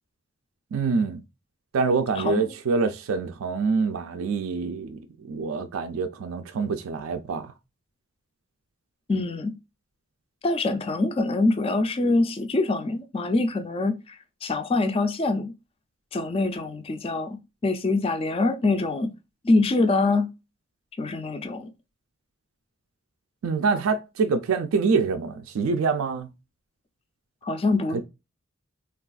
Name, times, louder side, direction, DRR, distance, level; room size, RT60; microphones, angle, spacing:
voice 1, 0.7-1.2 1.7-5.0 5.3-7.5 23.4-26.3 27.9-28.0, right 4 dB, 75° right, 0.4 m, -25 dB
voice 2, 2.2-2.5 9.1-9.6 10.4-14.2 14.4-15.5 16.1-17.4 17.6-19.1 19.4-20.3 21.0-21.7 27.4-28.0, left 2 dB, 25° left, 0.3 m, -24 dB
3.4 x 2.3 x 2.3 m
head